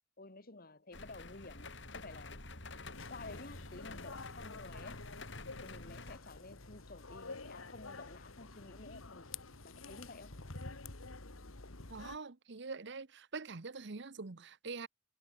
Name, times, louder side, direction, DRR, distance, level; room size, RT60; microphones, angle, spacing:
voice 1, 0.2-2.4 3.1-5.0 5.6-9.3 9.6-10.4, left 2 dB, 45° left, 2.1 m, -52 dB
sound 1, 0.9-6.2, left 2 dB, 60° left, 5.1 m, -49 dB
sound 2, 2.9-12.2, left 3 dB, 90° left, 2.2 m, -49 dB
voice 2, 11.9-14.9, right 4 dB, 60° right, 0.9 m, -44 dB
head